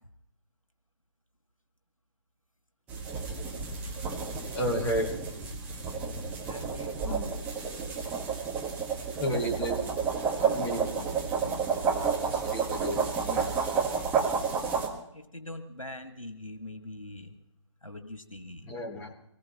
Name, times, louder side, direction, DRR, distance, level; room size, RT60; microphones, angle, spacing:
sound 1, 2.9-14.9, right 5 dB, 10° right, 1.6 m, -31 dB
voice 1, 4.5-5.2 7.0-7.3 9.2-9.8 10.5-11.1 12.2-13.6 18.6-19.1, equal, 10° left, 0 dB, 1.5 m, -32 dB
voice 2, 6.5-7.2 10.4-10.6 11.4-11.6 12.5-12.6 15.1-17.3 17.8-18.7, left 1 dB, 90° left, 6 dB, 1.9 m, -43 dB
24.5 x 19.0 x 3.0 m, 0.75 s
figure-of-eight pair, 145°, 17 cm